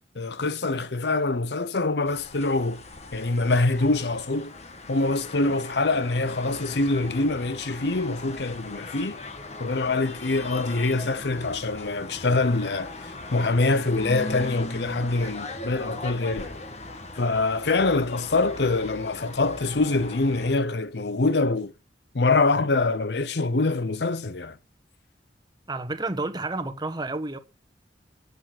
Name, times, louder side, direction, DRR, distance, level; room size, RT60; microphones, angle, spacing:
voice 1, 0.2-2.8 3.1-4.5 4.9-9.2 9.6-16.6 17.1-21.7 22.1-24.6, left 3 dB, 70° left, 0.8 m, -25 dB
sound 1, 2.1-20.5, left 2 dB, 40° left, 1.4 m, -39 dB
voice 2, 25.7-27.4, right 2 dB, 25° right, 1.2 m, -30 dB
10.5 x 7.0 x 7.8 m
head